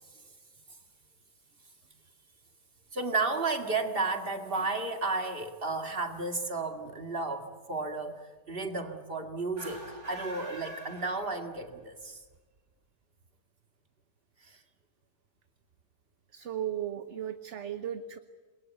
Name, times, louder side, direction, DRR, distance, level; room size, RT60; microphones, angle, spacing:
voice 1, 2.9-8.2 8.5-12.2 14.5-14.6, right 3 dB, 35° right, 5 dB, 2.4 m, -33 dB
sound 1, 9.5-11.8, right 1 dB, 75° right, 8.3 m, -45 dB
voice 2, 16.3-18.2, right 10 dB, 50° right, 10 dB, 1.2 m, -36 dB
28.5 x 21.5 x 8.3 m, 1.4 s
omnidirectional pair, 1.7 m